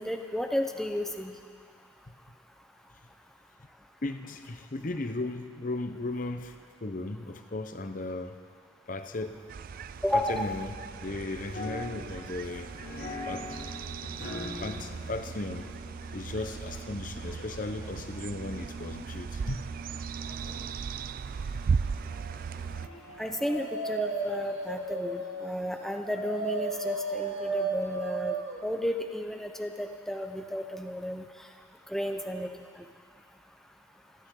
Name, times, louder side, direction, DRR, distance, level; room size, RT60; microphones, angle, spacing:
voice 1, 0.0-1.4 10.0-10.5 23.2-31.5 31.9-32.9, left 1 dB, ahead, 4 dB, 0.7 m, -33 dB
voice 2, 4.0-8.4 8.9-9.4 10.1-12.7 13.2-13.5 14.6-15.7 16.1-19.6 21.5-21.6, left 2 dB, 45° left, 8 dB, 0.8 m, -36 dB
sound 1, 9.5-22.9, right 5 dB, 50° right, 0.3 m, -37 dB
sound 2, 11.4-24.7, left 2 dB, 85° left, 2.8 m, -45 dB
Dog, 23.0-28.6, right 3 dB, 80° right, 1.5 m, -34 dB
28.0 x 12.0 x 3.8 m, 2.2 s
head